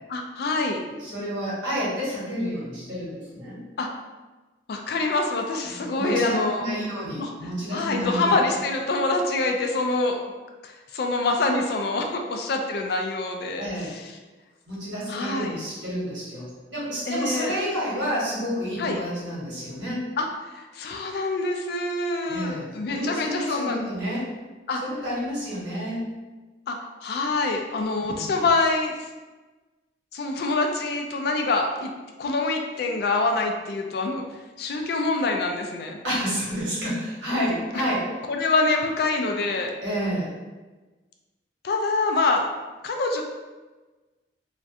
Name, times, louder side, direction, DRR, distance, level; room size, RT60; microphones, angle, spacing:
voice 1, 0.1-0.8 3.8-3.9 4.7-6.6 7.2-7.3 7.7-10.2 10.6-14.1 15.1-15.6 17.1-17.5 18.8-19.0 20.2-23.9 24.7-24.8 26.7-28.9 30.1-31.9 32.2-34.2 34.6-36.0 37.7-37.8 38.3-39.7 41.6-42.4 42.8-43.2, left 3 dB, 55° left, 3 dB, 0.3 m, -25 dB
voice 2, 1.0-3.6 5.6-8.3 13.6-13.9 14.7-20.0 22.3-24.3 24.8-26.1 28.0-28.4 36.0-38.1 39.8-40.3, equal, 90° right, -8 dB, 1.2 m, -29 dB
2.4 x 2.1 x 2.6 m, 1.2 s
head